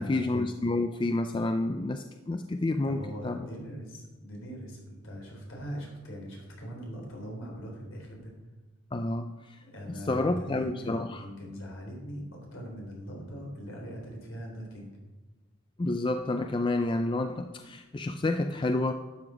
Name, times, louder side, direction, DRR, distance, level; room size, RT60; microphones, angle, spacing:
voice 1, 0.0-3.5 8.9-9.6 10.1-11.3 15.8-18.9, left 2 dB, 20° left, 7 dB, 0.4 m, -29 dB
voice 2, 2.8-8.3 9.6-15.0, equal, 65° left, 0 dB, 3.8 m, -41 dB
12.0 x 8.0 x 4.9 m, 1.2 s
head